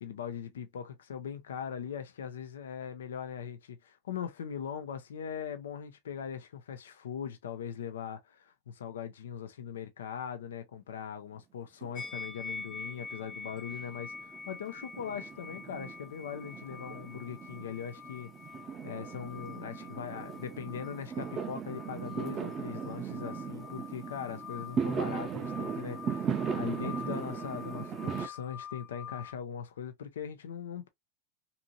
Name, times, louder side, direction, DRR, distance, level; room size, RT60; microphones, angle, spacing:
voice 1, 0.0-18.3 18.8-30.9, left 8 dB, 85° left, 0.5 m, -40 dB
Fireworks, 11.8-12.7 13.0-28.3, right 7 dB, 30° right, 0.5 m, -38 dB
sound 1, 11.9-29.3, left 5 dB, 40° left, 0.7 m, -46 dB
2.7 x 2.6 x 2.5 m
hypercardioid pair, 100°, 0 cm